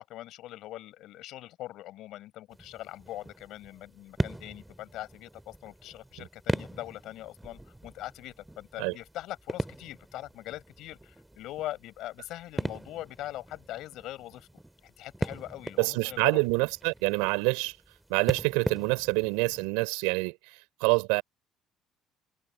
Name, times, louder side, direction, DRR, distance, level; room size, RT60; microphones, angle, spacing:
voice 1, 0.0-14.5 14.8-16.4, left 15 dB, 70° left, 6.4 m, -42 dB
sound 1, 2.5-19.7, right 1 dB, 10° right, 2.9 m, -39 dB
voice 2, 15.8-17.7 18.1-20.4 20.8-21.2, right 30 dB, 80° right, 4.1 m, -26 dB
hypercardioid pair, 60°, 0 cm